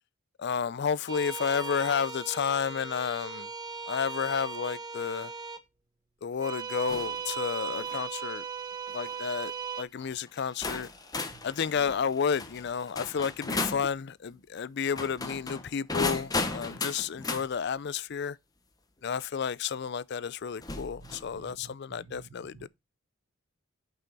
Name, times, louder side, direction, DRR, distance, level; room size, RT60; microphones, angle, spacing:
voice 1, 0.4-3.5 3.9-5.3 6.2-8.4 8.9-9.5 9.8-10.9 11.4-18.4 19.0-22.7, left 6 dB, 55° left, 0.4 m, -31 dB
sound 1, 1.1-5.6 6.3-9.8, right 6 dB, 20° right, 0.8 m, -38 dB
sound 2, 6.9-7.2 7.7-8.0 8.9-9.2 10.0-10.1 10.6-13.9 14.9-17.5 19.2-19.3 20.6-21.3, left 3 dB, 20° left, 1.0 m, -35 dB
voice 2, 21.0-22.3 22.5-22.7, right 4 dB, 85° right, 0.7 m, -52 dB
9.0 x 5.6 x 4.0 m
head